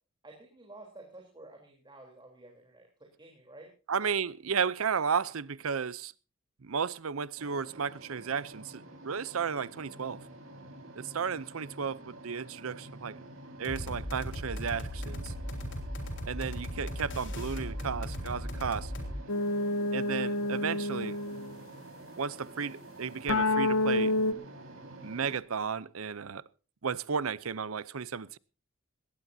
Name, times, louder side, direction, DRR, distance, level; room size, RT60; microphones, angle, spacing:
voice 1, 0.2-3.7, right 2 dB, 25° right, 3.7 m, -51 dB
voice 2, 3.9-6.1 6.6-10.2 11.0-13.2 13.6-15.3 16.3-18.9 19.9-21.2 22.2-24.2 25.0-26.4 26.8-28.4, right 6 dB, 90° right, 0.7 m, -33 dB
sound 1, 7.4-25.4, right 1 dB, 75° right, 4.8 m, -49 dB
sound 2, 13.6-19.1, equal, 60° left, 3.9 m, -38 dB
sound 3, 19.3-21.6 23.3-24.3, left 2 dB, 85° left, 1.0 m, -28 dB
20.0 x 17.5 x 2.8 m
head